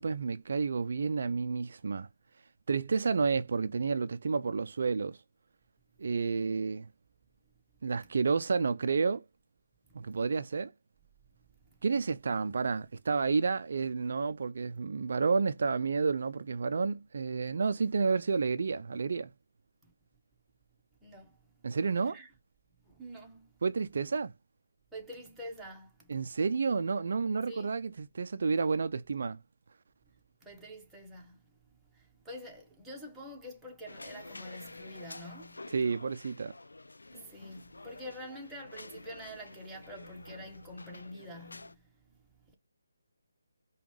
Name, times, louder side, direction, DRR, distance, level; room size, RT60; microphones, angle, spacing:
voice 1, 0.0-2.1 2.7-5.2 6.0-6.9 7.8-9.2 9.9-10.7 11.8-19.3 21.6-22.2 23.6-24.3 26.1-29.4 35.7-36.5, right 4 dB, 55° right, 0.3 m, -30 dB
voice 2, 21.0-21.4 22.0-22.3 22.9-23.5 24.9-26.3 27.5-27.7 30.4-31.4 31.9-35.7 37.1-42.2 42.5-42.6, equal, 5° right, 1.0 m, -47 dB
club natacio domino, 33.9-41.7, left 2 dB, 80° left, 0.4 m, -49 dB
5.1 x 2.3 x 3.0 m
figure-of-eight pair, 155°, 0 cm